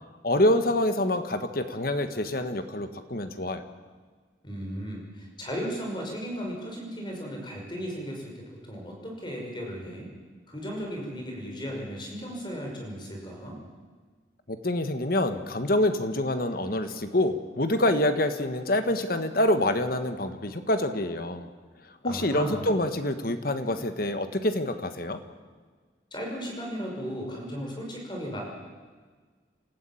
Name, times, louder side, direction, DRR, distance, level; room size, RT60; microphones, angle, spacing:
voice 1, 0.2-3.6 14.5-21.5 22.0-25.2, left 1 dB, 50° left, 8 dB, 1.5 m, -26 dB
voice 2, 4.4-8.3 8.7-10.1 10.5-13.6 22.0-22.7 26.1-28.4, equal, 25° left, 0 dB, 5.7 m, -35 dB
27.5 x 14.5 x 8.7 m, 1.5 s
head